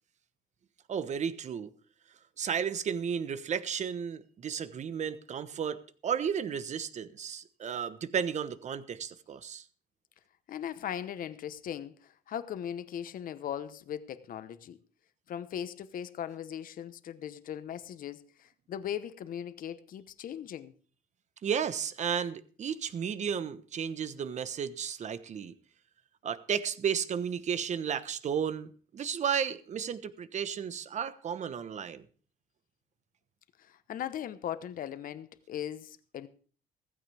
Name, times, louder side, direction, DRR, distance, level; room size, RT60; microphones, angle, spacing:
voice 1, 0.9-1.7 2.4-9.6 21.4-25.5 26.2-28.7 28.9-32.0, right 7 dB, 45° right, 1.1 m, -33 dB
voice 2, 10.5-14.8 15.3-20.7 33.6-36.3, left 9 dB, 55° left, 1.1 m, -39 dB
16.0 x 15.0 x 3.5 m
cardioid pair, 110°, 17 cm